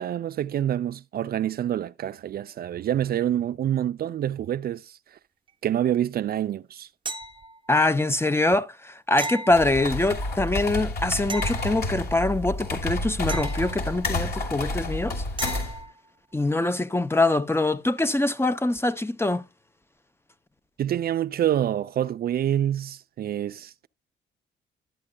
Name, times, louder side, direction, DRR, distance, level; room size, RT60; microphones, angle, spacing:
voice 1, 0.0-5.0 5.6-6.9 20.8-23.9, right 11 dB, 50° right, 0.4 m, -27 dB
sound 1, 7.1-7.8 9.2-10.3 11.3-12.3 13.3-14.3 15.4-16.0 18.8-18.9, right 3 dB, 25° right, 0.8 m, -36 dB
voice 2, 7.7-15.2 16.3-19.4, left 2 dB, 10° left, 0.6 m, -24 dB
sound 2, 9.5-15.8, left 2 dB, 55° left, 2.8 m, -30 dB
11.5 x 8.6 x 2.2 m
cardioid pair, 90°, 20 cm